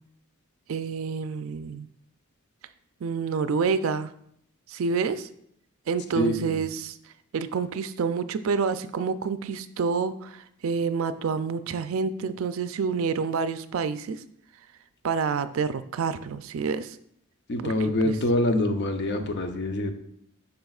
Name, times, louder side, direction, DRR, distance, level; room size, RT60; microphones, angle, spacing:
voice 1, 0.7-1.9 3.0-4.1 4.7-5.3 5.9-7.0 7.3-14.2 15.0-17.0 17.6-17.7 18.0-18.2, right 5 dB, 70° right, 12 dB, 0.4 m, -28 dB
voice 2, 6.1-6.6 17.5-19.9, left 1 dB, 55° left, 6 dB, 0.7 m, -25 dB
7.8 x 5.5 x 2.4 m, 0.70 s
head